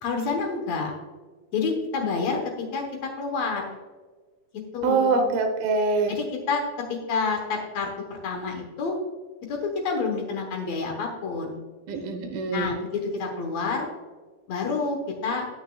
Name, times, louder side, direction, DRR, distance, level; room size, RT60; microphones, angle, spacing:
voice 1, 0.0-0.9 1.5-2.4 2.7-3.8 4.7-5.3 6.1-9.0 9.5-11.6 12.5-13.9 14.5-15.5, left 4 dB, 80° left, 2 dB, 1.5 m, -28 dB
voice 2, 4.8-6.1 11.9-12.7, right 4 dB, 70° right, 5 dB, 2.5 m, -24 dB
18.5 x 6.2 x 2.3 m, 1.4 s
omnidirectional pair, 4.8 m